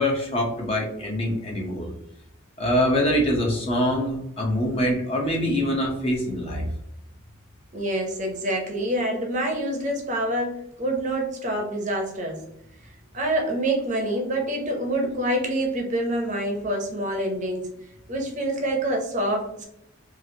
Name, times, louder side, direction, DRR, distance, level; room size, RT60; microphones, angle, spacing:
voice 1, 0.0-1.9 2.6-6.6, equal, 30° left, -1 dB, 0.6 m, -24 dB
voice 2, 7.7-12.4 13.1-17.7 18.1-19.6, right 1 dB, 35° right, 1 dB, 0.6 m, -26 dB
3.0 x 2.4 x 2.6 m, 0.78 s
head